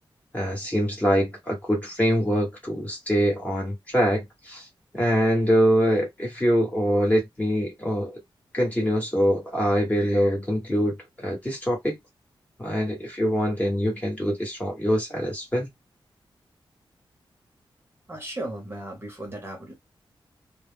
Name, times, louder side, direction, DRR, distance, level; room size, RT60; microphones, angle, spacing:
voice 1, 0.3-4.6 4.9-8.1 8.5-12.0 12.6-15.7, equal, 15° left, 1.1 m, -24 dB
voice 2, 18.1-19.7, right 1 dB, 25° right, 0.8 m, -36 dB
2.3 x 2.0 x 3.3 m
wide cardioid pair, 170°, 9 cm